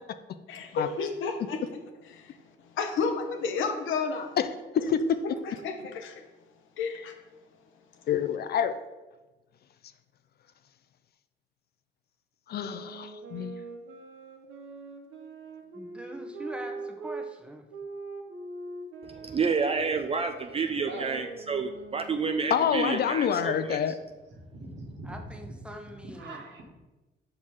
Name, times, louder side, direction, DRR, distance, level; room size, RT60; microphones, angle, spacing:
voice 1, 0.5-1.8 2.1-2.4 2.7-4.3 5.2-6.2 6.8-7.1, left 4 dB, 80° left, 4 dB, 0.8 m, -31 dB
voice 2, 8.1-8.8 12.5-13.6 22.5-24.0, left 8 dB, 55° left, 11 dB, 0.4 m, -27 dB
sound 1, 12.6-17.3 17.7-22.7, right 3 dB, 80° right, 0.9 m, -42 dB
voice 3, 15.7-17.7 25.0-26.5, right 1 dB, 5° right, 4 dB, 0.9 m, -43 dB
voice 4, 19.2-23.8, right 5 dB, 30° right, 6 dB, 0.4 m, -29 dB
voice 5, 20.8-21.2 24.3-26.6, right 1 dB, 65° right, 1 dB, 1.5 m, -42 dB
5.6 x 4.4 x 4.7 m, 1.1 s
cardioid pair, 90°, 20 cm